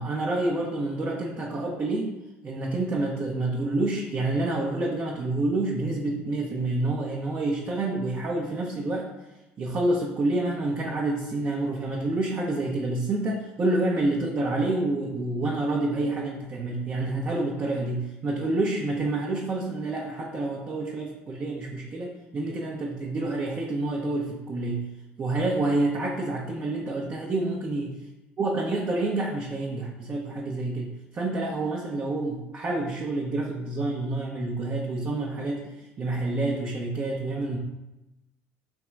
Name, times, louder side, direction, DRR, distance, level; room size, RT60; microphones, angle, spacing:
voice 1, 0.0-2.1 2.4-9.1 9.6-24.8 25.2-27.9 28.4-37.6, right 2 dB, 35° right, -3 dB, 0.8 m, -28 dB
3.5 x 3.0 x 4.6 m, 0.98 s
supercardioid pair, 80°, 6 cm